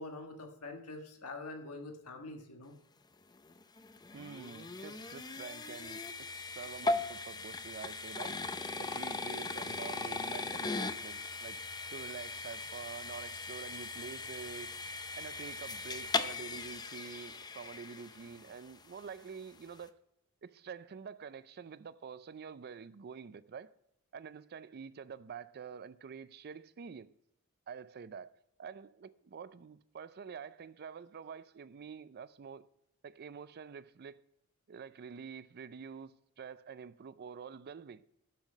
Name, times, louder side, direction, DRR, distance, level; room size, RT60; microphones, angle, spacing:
voice 1, 0.0-2.7, left 2 dB, 90° left, 1.5 m, -45 dB
sound 1, 3.4-18.6, left 3 dB, 20° left, 0.5 m, -39 dB
voice 2, 4.1-6.3 6.6-8.5 8.8-14.8 15.1-20.0 20.4-23.7 24.1-27.1 27.7-32.6 33.0-34.2 34.7-38.0, right 6 dB, 45° right, 0.4 m, -47 dB
12.0 x 5.7 x 5.2 m
head